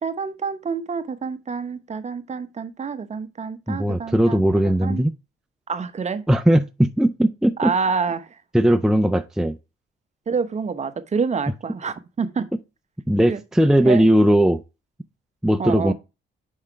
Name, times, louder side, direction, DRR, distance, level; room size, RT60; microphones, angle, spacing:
voice 1, 0.0-5.1 5.7-6.2 7.6-8.4 10.3-12.5 13.3-13.4 13.8-14.1 15.6-15.9, right 5 dB, 35° right, 0.8 m, -27 dB
voice 2, 3.7-5.1 6.3-7.7 8.5-9.6 13.1-14.6 15.4-15.9, right 1 dB, 5° right, 0.4 m, -18 dB
5.5 x 5.0 x 4.5 m
cardioid pair, 90°, 20 cm